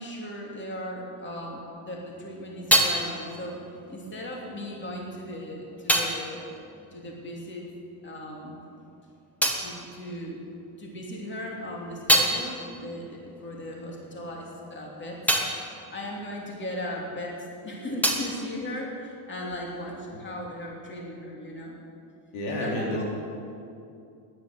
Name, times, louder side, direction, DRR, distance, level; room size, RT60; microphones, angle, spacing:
voice 1, 0.0-3.6 3.9-6.6 6.9-7.7 8.0-8.5 9.6-10.4 10.8-15.4 15.9-21.7 22.5-23.0, left 1 dB, 20° left, -1 dB, 3.0 m, -37 dB
sound 1, 1.9-7.9 8.1-10.8 11.2-17.3 17.5-19.6, equal, 5° left, 1.7 m, -30 dB
voice 2, 22.3-23.0, left 1 dB, 80° left, -2 dB, 4.1 m, -29 dB
13.0 x 10.5 x 9.6 m, 2.6 s
cardioid pair, 135°, 50 cm